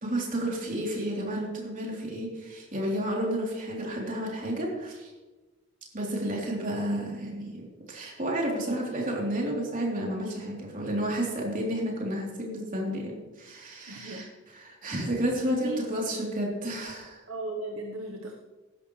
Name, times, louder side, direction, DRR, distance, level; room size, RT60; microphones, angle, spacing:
voice 1, 0.0-5.1 5.9-17.2, right 1 dB, 40° right, -2 dB, 3.5 m, -31 dB
voice 2, 13.9-14.3 15.4-15.8 17.3-18.3, right 2 dB, 70° right, 1 dB, 1.2 m, -36 dB
16.0 x 12.0 x 3.3 m, 1.2 s
head